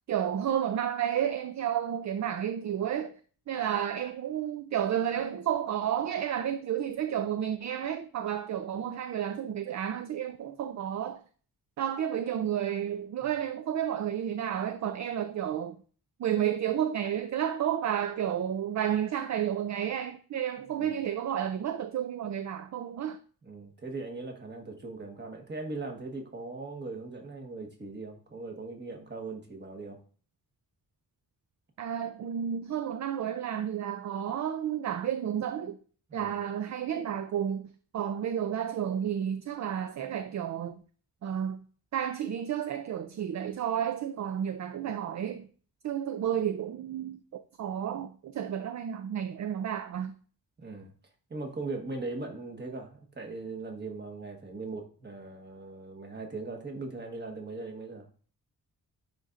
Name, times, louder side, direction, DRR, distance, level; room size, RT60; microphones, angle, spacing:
voice 1, 0.1-3.2 3.5-11.2 11.8-15.8 16.2-23.2 31.8-35.8 36.1-40.8 41.2-41.6 41.9-45.5 45.8-47.2 47.6-50.1, right 9 dB, 50° right, 0.4 m, -31 dB
voice 2, 23.4-30.0 36.1-36.4 50.6-50.9 51.3-58.1, right 3 dB, 30° right, 1.3 m, -39 dB
10.0 x 3.9 x 2.5 m
wide cardioid pair, 160°, 36 cm